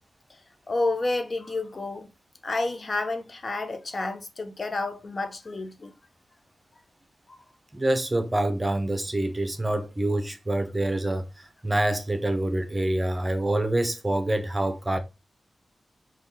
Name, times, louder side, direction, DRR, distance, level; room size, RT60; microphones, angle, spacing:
voice 1, 0.7-2.1 2.4-5.9 7.3-7.4, left 2 dB, 50° left, 0.5 m, -30 dB
voice 2, 7.7-15.0, right 1 dB, 25° right, 0.7 m, -26 dB
3.5 x 2.3 x 2.8 m
cardioid pair, 45°, 0 cm